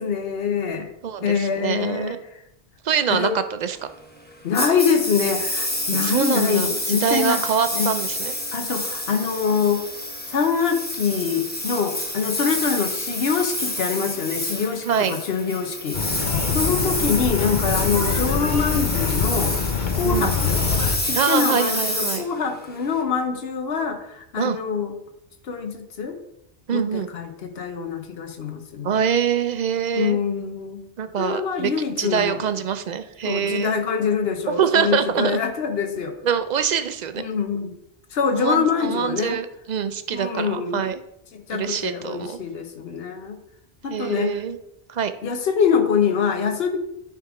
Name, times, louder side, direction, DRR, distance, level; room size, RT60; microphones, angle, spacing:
voice 1, 0.0-0.9 1.2-2.2 3.1-3.4 4.4-7.4 7.7-7.9 8.5-9.8 10.3-16.2 16.5-19.6 19.9-20.6 21.0-24.9 25.4-26.2 26.7-28.9 29.9-30.8 31.2-32.4 33.2-36.1 37.2-37.7 38.1-39.4 40.1-40.8 41.3-43.4 43.8-44.4 45.2-46.8, left 6 dB, 65° left, 6 dB, 1.1 m, -24 dB
voice 2, 1.0-2.2 2.8-3.3 3.6-3.8 5.9-8.3 14.8-15.2 20.1-20.3 21.1-22.3 24.4-24.6 26.7-27.1 28.8-30.2 31.0-31.7 32.0-33.7 34.5-35.4 36.2-37.2 38.3-41.0 41.5-42.4 43.9-44.6 44.9-45.1, right 7 dB, 55° right, 10 dB, 0.5 m, -24 dB
Engine, 4.5-23.0, left 1 dB, 10° left, 1.0 m, -28 dB
sound 1, 15.9-21.0, left 6 dB, 50° left, 0.8 m, -24 dB
9.3 x 3.6 x 4.8 m, 0.80 s
omnidirectional pair, 1.1 m